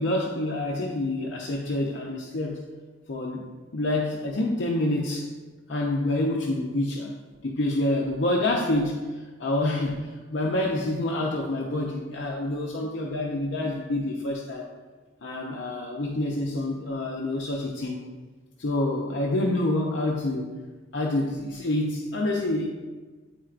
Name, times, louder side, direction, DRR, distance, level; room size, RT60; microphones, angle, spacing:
voice 1, 0.0-2.6 3.1-3.5 3.7-5.3 5.7-7.1 7.4-14.7 15.2-18.0 18.6-20.5 20.9-22.7, left 1 dB, 70° left, -2 dB, 0.6 m, -27 dB
8.6 x 4.5 x 2.4 m, 1.3 s
head